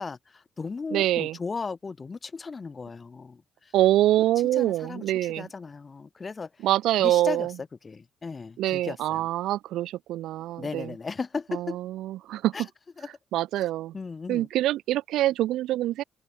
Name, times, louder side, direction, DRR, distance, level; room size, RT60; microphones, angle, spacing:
voice 1, 0.0-3.7 4.6-6.5 7.0-7.5 7.8-9.3 10.6-11.8 12.5-12.6 13.0-13.1 13.9-14.5, left 4 dB, 35° left, 5.1 m, -36 dB
voice 2, 0.9-1.4 3.7-5.5 6.6-7.5 8.6-10.9 11.5-12.5 13.3-13.9 14.3-16.0, right 14 dB, 65° right, 0.5 m, -25 dB
hypercardioid pair, 45°, 0 cm